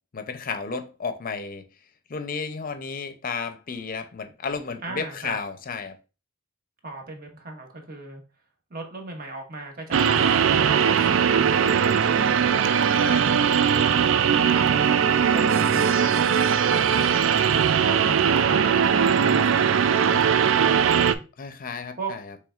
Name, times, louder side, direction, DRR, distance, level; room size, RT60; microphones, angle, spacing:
voice 1, 0.1-1.6 2.1-6.0 13.0-13.4 21.4-22.3, left 5 dB, 45° left, 0.6 m, -33 dB
voice 2, 4.8-5.4 6.8-8.2 8.7-12.8 14.2-17.3 17.8-21.2 22.0-22.1, right 2 dB, 45° right, 1.2 m, -38 dB
sound 1, 9.9-21.2, right 7 dB, 70° right, 0.4 m, -20 dB
6.2 x 3.4 x 2.4 m
head